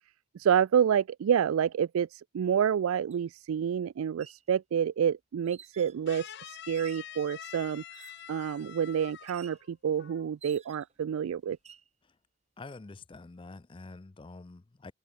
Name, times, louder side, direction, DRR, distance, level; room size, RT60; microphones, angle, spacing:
voice 1, 0.3-7.8 8.3-11.6, right 8 dB, 75° right, 0.3 m, -28 dB
sound 1, 3.1-3.2 4.0-4.5 5.5-6.0 6.7-7.2 7.9-8.4 9.3-9.6 10.4-11.0 11.5-11.9, right 8 dB, 30° right, 1.7 m, -53 dB
sound 2, 6.1-9.7 10.0-10.3, left 10 dB, 50° left, 0.9 m, -46 dB
voice 2, 12.6-14.9, left 3 dB, 25° left, 0.4 m, -47 dB
open air
head